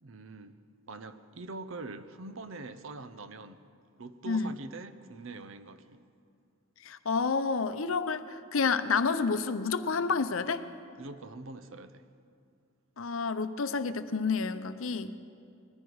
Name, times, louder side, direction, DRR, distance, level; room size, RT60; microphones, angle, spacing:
voice 1, 0.0-0.6 0.9-3.6 4.0-5.8 11.0-12.0, right 3 dB, 65° right, 11 dB, 0.7 m, -44 dB
voice 2, 6.8-10.6 13.0-15.1, left 4 dB, 70° left, 11 dB, 0.7 m, -29 dB
20.0 x 15.0 x 4.7 m, 2.4 s
head